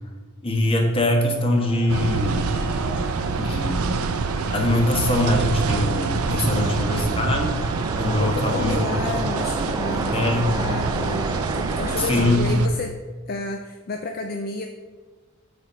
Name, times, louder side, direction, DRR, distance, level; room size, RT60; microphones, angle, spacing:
voice 1, 0.4-2.4 3.4-4.2 4.5-7.6 8.0-8.9 10.1-10.5 12.0-12.5, left 1 dB, 25° left, 2 dB, 1.3 m, -22 dB
sound 1, 1.2-12.9, left 2 dB, 85° left, 1.5 m, -43 dB
sound 2, 1.9-12.7, right 4 dB, 90° right, 0.5 m, -26 dB
sound 3, 3.2-12.1, right 3 dB, 20° right, 0.3 m, -31 dB
voice 2, 6.5-7.0 8.2-13.0 13.3-14.7, left 3 dB, 45° left, 4 dB, 0.5 m, -31 dB
8.9 x 4.3 x 6.2 m, 1.3 s
head